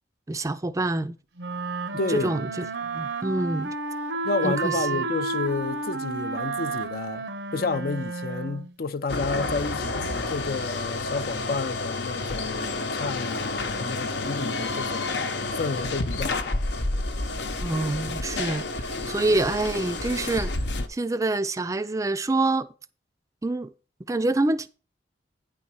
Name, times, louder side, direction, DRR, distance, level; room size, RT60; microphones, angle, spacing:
voice 1, 0.3-1.1 2.1-3.7 4.4-4.9 17.6-20.5 20.9-22.7 23.4-23.7 24.1-24.7, right 2 dB, 20° right, 0.4 m, -26 dB
sound 1, 1.4-8.7, right 3 dB, 85° right, 0.8 m, -31 dB
voice 2, 2.0-2.3 4.2-7.3 7.5-15.2 15.6-16.6, left 3 dB, 55° left, 0.5 m, -30 dB
sound 2, 9.1-20.9, left 2 dB, 75° left, 0.9 m, -30 dB
9.5 x 4.1 x 6.1 m
head